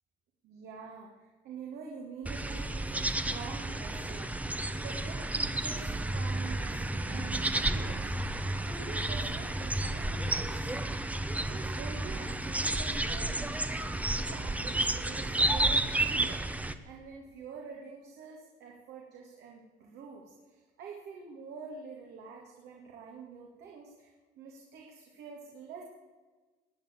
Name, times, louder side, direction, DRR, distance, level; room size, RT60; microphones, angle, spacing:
voice 1, 0.4-8.1 8.6-10.9 11.3-13.6 14.0-16.5 16.8-25.8, right 5 dB, 80° right, 0 dB, 2.2 m, -46 dB
sound 1, 2.2-16.7, right 2 dB, 10° right, 0.7 m, -31 dB
20.0 x 7.1 x 8.2 m, 1.3 s
cardioid pair, 110°, 17 cm